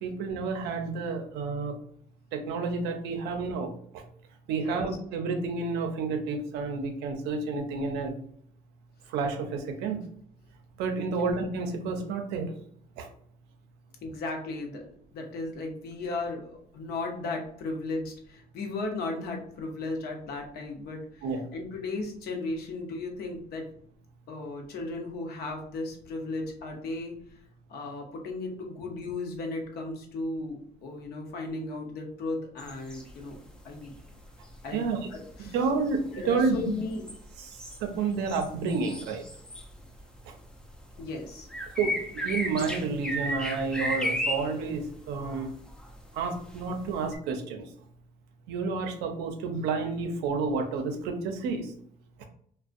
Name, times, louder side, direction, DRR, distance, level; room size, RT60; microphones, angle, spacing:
voice 1, 0.0-1.8 2.3-3.7 4.5-8.1 9.1-10.0 10.8-12.5 13.0-13.1 21.2-21.4 34.7-35.0 35.4-36.8 37.4-39.2 41.8-45.5 46.1-47.7 48.5-51.7, right 4 dB, 90° right, 5 dB, 0.5 m, -30 dB
voice 2, 14.0-23.6 24.3-27.4 27.7-33.4 33.6-33.9 34.6-34.8 35.1-35.6 36.1-37.1 41.0-41.5, left 2 dB, 70° left, 2 dB, 0.7 m, -35 dB
sound 1, 32.6-33.6 33.9-40.2 40.4-47.2, equal, 5° left, 0.4 m, -35 dB
2.5 x 2.1 x 2.4 m, 0.64 s
cardioid pair, 110°, 17 cm